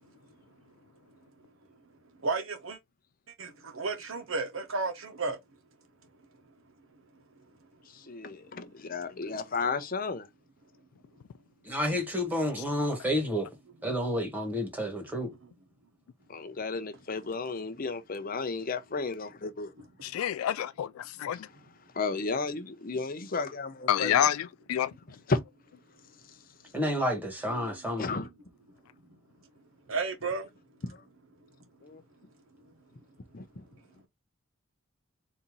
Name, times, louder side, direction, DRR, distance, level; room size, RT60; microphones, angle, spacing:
voice 1, 2.2-2.8 3.4-5.4 19.8-19.9 21.6-21.7 27.6-27.8 29.9-30.5, right 3 dB, 75° right, 1.1 m, -33 dB
voice 2, 7.9-10.3 16.3-19.7 21.3-21.4 21.9-24.3 25.3-25.4 28.0-28.3 30.8-31.0 31.8-32.0 33.3-33.6, left 4 dB, 45° left, 0.7 m, -33 dB
voice 3, 11.6-13.5 13.8-15.3 26.7-28.1, equal, 10° right, 1.6 m, -30 dB
voice 4, 20.0-21.5 23.9-24.9, left 10 dB, 90° left, 0.3 m, -28 dB
4.3 x 2.8 x 3.8 m
head